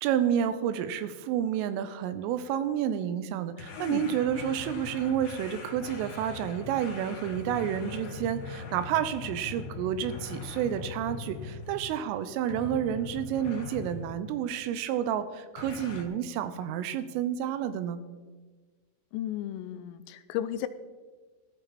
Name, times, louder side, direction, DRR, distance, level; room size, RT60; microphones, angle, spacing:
voice 1, 0.0-18.0, right 9 dB, 80° right, 11 dB, 3.2 m, -30 dB
sound 1, 3.6-12.1 12.5-14.2 15.6-16.0, left 4 dB, 70° left, 3.8 m, -41 dB
voice 2, 3.8-4.2 19.1-20.7, left 11 dB, 85° left, 12 dB, 3.2 m, -34 dB
15.0 x 13.5 x 4.2 m, 1.4 s
omnidirectional pair, 5.9 m